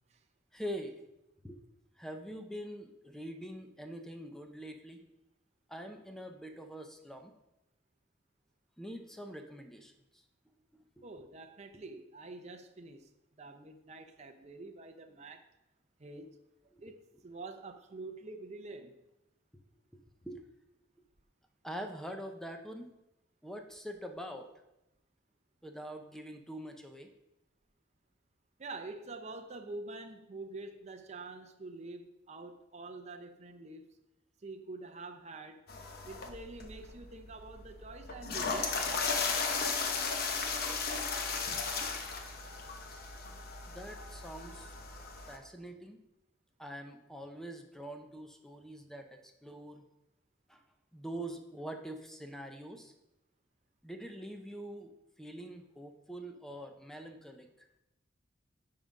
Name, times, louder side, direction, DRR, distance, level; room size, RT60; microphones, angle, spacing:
voice 1, 0.5-1.0 1.4-1.6 2.0-5.0 5.7-7.3 8.8-10.2 11.0-11.1 16.7-16.8 19.9-20.5 21.6-22.9 23.4-24.5 25.6-27.1 43.7-44.7 45.3-46.0 46.6-49.8 50.5-50.6 50.9-52.9 53.8-54.9 55.2-57.7, equal, 5° left, 0.7 m, -44 dB
voice 2, 11.0-13.1 13.4-15.4 16.0-16.4 16.8-17.0 17.2-19.0 28.6-33.9 34.4-35.6 36.1-38.9, right 3 dB, 40° right, 0.6 m, -46 dB
sound 1, 35.7-45.4, left 4 dB, 55° left, 1.0 m, -36 dB
9.7 x 3.8 x 5.3 m
head